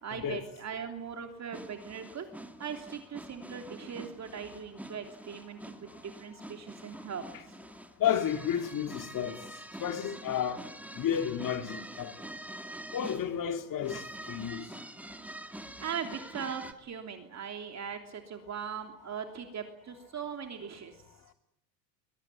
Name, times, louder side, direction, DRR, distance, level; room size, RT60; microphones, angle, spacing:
voice 1, 0.0-2.3 2.6-7.2 15.6-21.0, right 7 dB, 35° right, 3.2 m, -40 dB
sound 1, 1.5-16.7, right 1 dB, 5° right, 2.2 m, -46 dB
voice 2, 8.0-9.4 9.8-10.6 10.9-12.3 12.9-14.7, left 9 dB, 40° left, 2.9 m, -32 dB
22.5 x 20.0 x 9.8 m
supercardioid pair, 95°, 48 cm